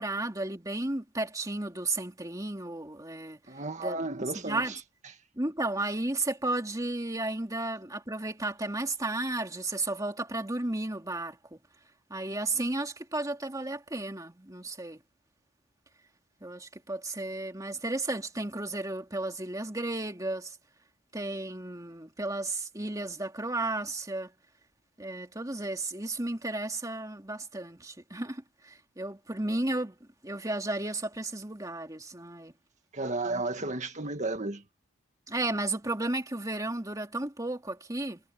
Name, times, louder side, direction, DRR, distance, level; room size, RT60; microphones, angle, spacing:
voice 1, 0.0-3.4 3.8-4.0 4.3-4.7 5.4-11.6 12.1-15.0 16.4-20.6 21.1-24.3 25.0-30.0 30.2-32.5 33.3-33.7 35.3-38.2, right 2 dB, 15° right, 2.6 m, -33 dB
voice 2, 3.5-4.8 32.9-34.6, right 2 dB, 35° right, 1.9 m, -33 dB
head